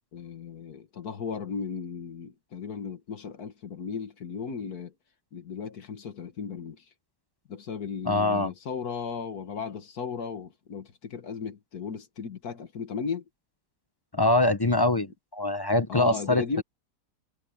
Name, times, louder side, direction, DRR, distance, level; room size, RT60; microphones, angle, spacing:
voice 1, 0.1-4.9 5.3-6.9 7.5-13.2 15.9-16.6, left 6 dB, 65° left, 2.0 m, -35 dB
voice 2, 8.1-8.5 14.1-16.6, left 2 dB, 25° left, 0.5 m, -24 dB
omnidirectional pair, 1.8 m